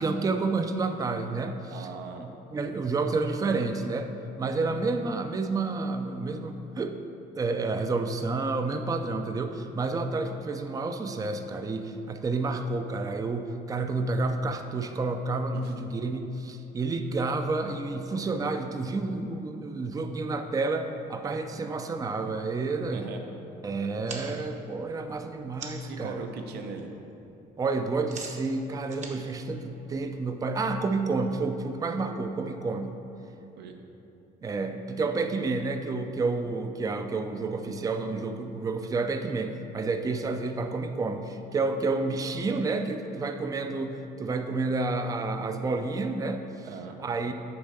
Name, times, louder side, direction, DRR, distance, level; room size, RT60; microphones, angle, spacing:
voice 1, 0.0-1.9 2.2-4.1 4.4-7.0 7.4-23.1 23.6-26.2 27.6-33.0 34.4-46.7 47.0-47.3, right 3 dB, 20° right, 7 dB, 0.4 m, -30 dB
voice 2, 1.7-2.3 15.5-15.7 22.9-23.2 25.9-26.9 33.6-33.7 46.6-47.0, right 5 dB, 75° right, 4 dB, 0.8 m, -39 dB
sound 1, 24.1-26.0 26.4-26.8 27.1-30.3, right 4 dB, 45° right, 1.0 m, -44 dB
6.9 x 4.4 x 6.6 m, 2.9 s
cardioid pair, 110°, 17 cm